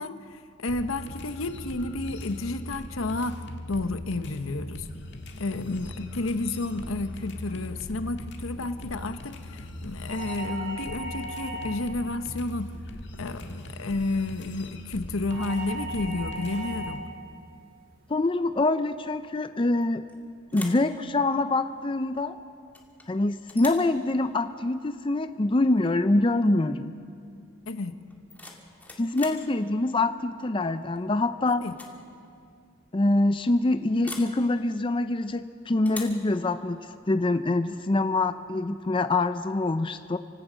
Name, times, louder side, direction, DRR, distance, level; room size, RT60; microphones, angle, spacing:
voice 1, 0.0-4.9 5.4-12.7 13.2-17.0 27.7-27.9 31.5-31.7, left 2 dB, 80° left, 10 dB, 1.0 m, -31 dB
sound 1, 0.7-17.0, left 1 dB, 55° left, 1.8 m, -40 dB
sound 2, 10.1-12.0 15.3-17.1, right 2 dB, 45° right, 2.8 m, -37 dB
voice 2, 18.1-20.0 20.5-22.4 23.1-26.9 29.0-31.6 32.9-36.8 37.1-40.2, left 2 dB, 25° left, 10 dB, 0.5 m, -25 dB
sound 3, 19.8-20.1 20.5-20.9 22.7-23.1 23.5-23.9 25.8-25.9 26.3-26.6 28.1-29.5 30.9-31.2 31.6-32.0 32.2-32.3 34.0-34.4 35.8-36.2, left 2 dB, 10° left, 1.9 m, -42 dB
26.5 x 16.5 x 6.3 m, 2.3 s
head